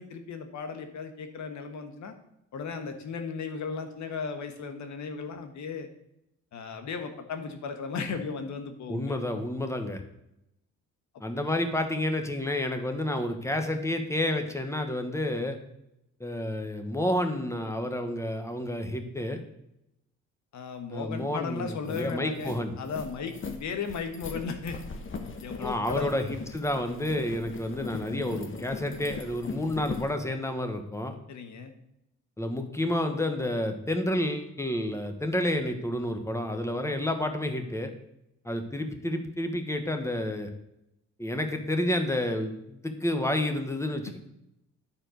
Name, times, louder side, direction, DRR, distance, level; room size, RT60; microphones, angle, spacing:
voice 1, 0.0-2.1 2.5-5.9 6.5-9.2 20.5-24.8 25.4-26.3 31.3-31.7 44.1-44.2, left 5 dB, 65° left, 7 dB, 1.4 m, -36 dB
voice 2, 8.9-10.0 11.2-15.6 16.2-19.4 20.9-22.7 25.6-31.1 32.4-37.9 38.4-40.5 41.2-44.2, left 1 dB, 10° left, 6 dB, 1.3 m, -30 dB
sound 1, 21.3-21.4 21.7-30.1, left 4 dB, 40° left, 1.2 m, -40 dB
10.5 x 4.4 x 6.4 m, 0.84 s
cardioid pair, 90°, 30 cm